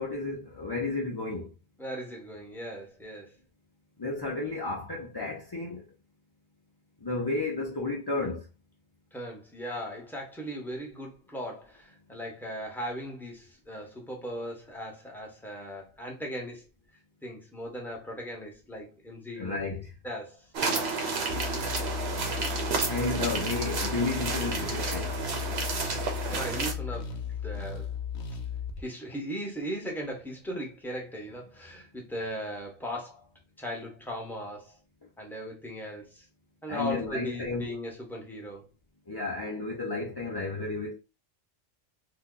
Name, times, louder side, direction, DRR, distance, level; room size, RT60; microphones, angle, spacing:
voice 1, 0.0-1.5 4.0-5.9 7.0-8.5 19.4-19.9 22.9-25.2 36.7-37.7 39.1-41.0, left 3 dB, 30° left, 0.4 m, -32 dB
voice 2, 1.8-3.3 9.1-16.6 17.2-19.6 20.0-21.0 26.2-27.9 28.8-33.3 33.6-34.8 35.2-36.3 36.6-38.7, equal, ahead, 0.9 m, -38 dB
sound 1, 20.5-26.7, right 4 dB, 65° right, 1.0 m, -31 dB
sound 2, 21.3-28.8, left 7 dB, 75° left, 0.9 m, -35 dB
2.8 x 2.3 x 3.7 m
omnidirectional pair, 1.2 m